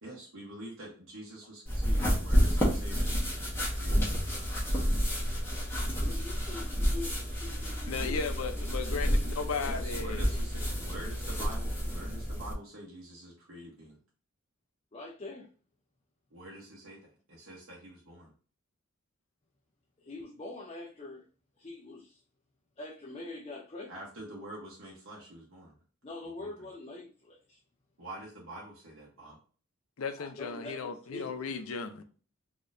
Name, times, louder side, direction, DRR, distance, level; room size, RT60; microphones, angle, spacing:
voice 1, 0.0-4.3 9.6-14.0 16.3-17.0 17.3-18.3 23.9-25.7 26.4-26.7 28.0-29.4, right 1 dB, 75° right, 1.1 m, -46 dB
sound 1, 1.6-12.5, equal, 10° left, 1.3 m, -30 dB
voice 2, 6.0-9.7 10.1-10.4 14.9-15.5 20.0-21.3 21.6-22.2 22.8-24.0 26.0-27.6 30.2-31.3, left 2 dB, 30° left, 0.5 m, -44 dB
voice 3, 7.9-10.3 30.0-32.0, left 5 dB, 90° left, 0.6 m, -36 dB
4.1 x 2.9 x 2.6 m
head